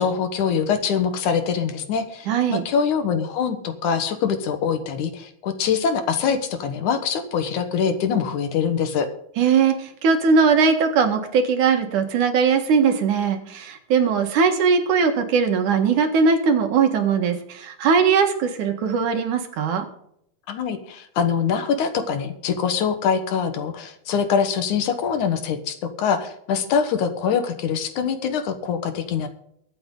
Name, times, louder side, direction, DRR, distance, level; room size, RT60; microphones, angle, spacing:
voice 1, 0.0-9.1 20.5-29.3, left 7 dB, 70° left, 8 dB, 2.7 m, -24 dB
voice 2, 2.3-2.6 9.4-19.9, right 5 dB, 70° right, 5 dB, 3.0 m, -20 dB
23.0 x 7.9 x 3.9 m, 0.72 s
omnidirectional pair, 3.7 m